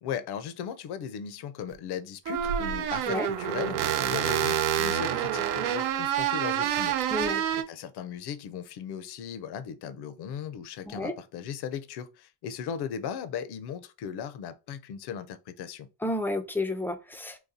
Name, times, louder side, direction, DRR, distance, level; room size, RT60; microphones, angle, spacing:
voice 1, 0.0-6.9 7.2-15.9, left 8 dB, 55° left, 0.6 m, -37 dB
sound 1, 1.7-1.8 2.3-7.6, right 10 dB, 75° right, 0.6 m, -27 dB
voice 2, 7.1-7.4 10.9-11.1 16.0-17.4, left 1 dB, 5° left, 0.3 m, -31 dB
4.0 x 2.3 x 2.6 m
supercardioid pair, 85°, 48 cm